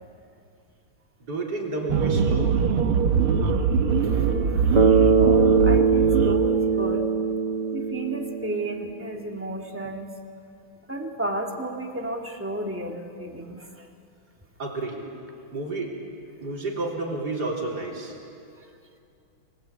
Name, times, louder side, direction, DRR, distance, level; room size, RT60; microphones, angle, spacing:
voice 1, 1.2-2.5 14.6-15.0 15.5-15.9 16.4-18.1, right 2 dB, 50° right, -2 dB, 4.3 m, -30 dB
sound 1, 1.9-6.4, right 5 dB, 85° right, 2.1 m, -22 dB
voice 2, 3.9-7.1 7.7-10.1 10.9-13.9, right 1 dB, 5° right, 1 dB, 2.0 m, -33 dB
Bass guitar, 4.8-9.0, right 5 dB, 25° right, 1.2 m, -21 dB
29.0 x 20.5 x 8.4 m, 2.5 s
omnidirectional pair, 2.3 m